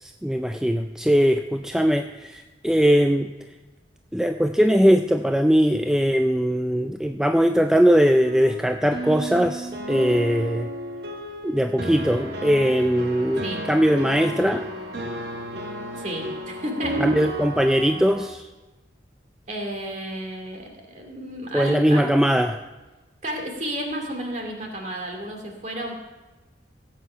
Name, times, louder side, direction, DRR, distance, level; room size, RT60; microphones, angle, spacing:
voice 1, 0.0-3.3 4.1-10.7 11.4-13.4 13.7-14.6 17.0-18.5 21.5-22.6, equal, 5° right, 5 dB, 0.3 m, -20 dB
sound 1, 8.2-18.3, right 1 dB, 55° right, 1.3 m, -33 dB
voice 2, 16.0-17.1 19.5-22.0 23.2-26.0, right 1 dB, 40° right, 2 dB, 2.3 m, -32 dB
17.5 x 8.1 x 5.6 m, 1.2 s
head